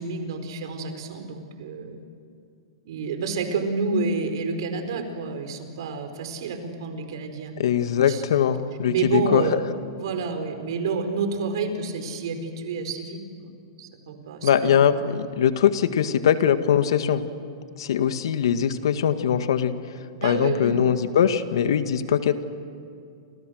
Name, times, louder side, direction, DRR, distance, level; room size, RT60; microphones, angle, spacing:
voice 1, 0.0-2.0 2.8-7.5 8.1-8.2 8.9-9.6 10.0-13.5 13.8-15.0 20.2-20.8, right 4 dB, 70° right, 7 dB, 4.6 m, -29 dB
voice 2, 7.6-9.6 14.4-17.3 17.8-19.7 20.2-22.4, left 8 dB, 75° left, 9 dB, 1.9 m, -21 dB
29.5 x 28.5 x 6.6 m, 2.5 s
hypercardioid pair, 135°, 3 cm